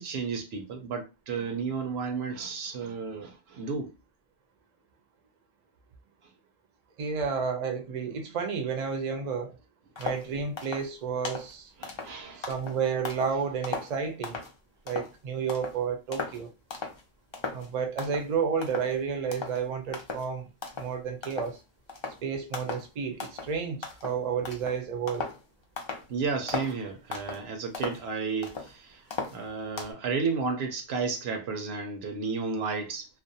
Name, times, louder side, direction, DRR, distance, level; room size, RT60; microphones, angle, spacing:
voice 1, 0.0-3.9 11.8-12.5 26.1-29.0 29.3-33.1, right 5 dB, 80° right, 0.9 m, -32 dB
voice 2, 7.0-9.6 10.0-11.7 12.4-14.4 14.9-16.5 17.5-20.5 20.8-21.6 22.2-25.3, right 6 dB, 50° right, 0.5 m, -31 dB
sound 1, 10.0-10.3 10.6-10.9 11.2-11.5 11.8-13.4 13.6-14.5 14.9-15.2 15.5-15.8 16.1-16.4 16.7-17.0 17.3-17.7 18.0-18.3 18.6-19.0 19.3-19.6 19.9-20.3 20.6-20.9 21.2-21.6 21.9-22.2 22.5-22.9 23.2-23.5 23.8-25.4 25.8-26.1 26.5-26.8 27.1-27.4 27.7-28.7 29.1-29.9, left 4 dB, 40° left, 0.4 m, -37 dB
2.4 x 2.1 x 2.6 m
omnidirectional pair, 1.1 m